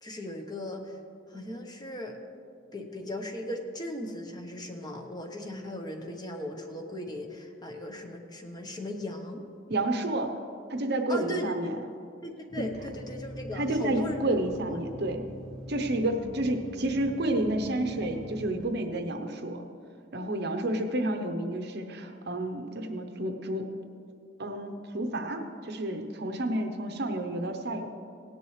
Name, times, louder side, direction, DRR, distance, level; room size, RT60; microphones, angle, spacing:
voice 1, 0.0-1.0 1.3-2.2 2.7-9.4 11.1-11.5 12.2-14.2 14.7-14.8, left 1 dB, 20° left, 3 dB, 1.0 m, -38 dB
voice 2, 9.7-10.3 10.7-11.8 12.6-12.7 13.5-15.3 15.7-19.6 20.1-23.7 24.4-27.9, right 1 dB, 60° right, 6 dB, 0.8 m, -30 dB
sound 1, 12.5-18.7, equal, 5° left, 1.7 m, -43 dB
17.0 x 10.5 x 3.2 m, 2.4 s
head